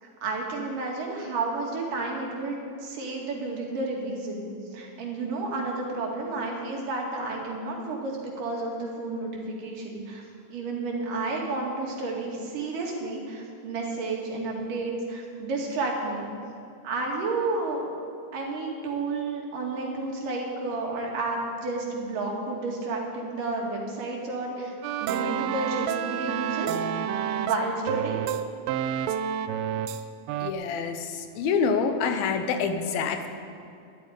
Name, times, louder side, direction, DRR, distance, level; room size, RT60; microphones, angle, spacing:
voice 1, 0.0-10.2 10.5-16.3 16.8-17.8 18.3-24.7 25.0-26.8 27.4-28.2, right 3 dB, 70° right, -1 dB, 3.7 m, -31 dB
sound 1, 24.8-30.0 30.3-30.5, right 9 dB, 90° right, 2.4 m, -29 dB
voice 2, 30.4-33.3, left 5 dB, 90° left, 7 dB, 2.8 m, -27 dB
12.5 x 8.6 x 9.9 m, 2.6 s
omnidirectional pair, 4.1 m